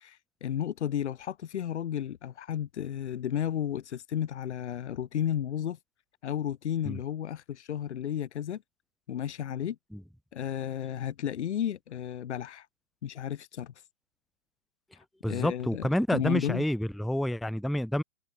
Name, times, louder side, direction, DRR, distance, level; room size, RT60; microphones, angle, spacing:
voice 1, 0.0-5.8 6.2-8.6 9.1-9.8 10.3-12.7 13.0-13.7 15.3-16.6, left 10 dB, 60° left, 4.4 m, -33 dB
voice 2, 15.2-18.0, left 1 dB, ahead, 0.6 m, -28 dB
hypercardioid pair, 135°, 39 cm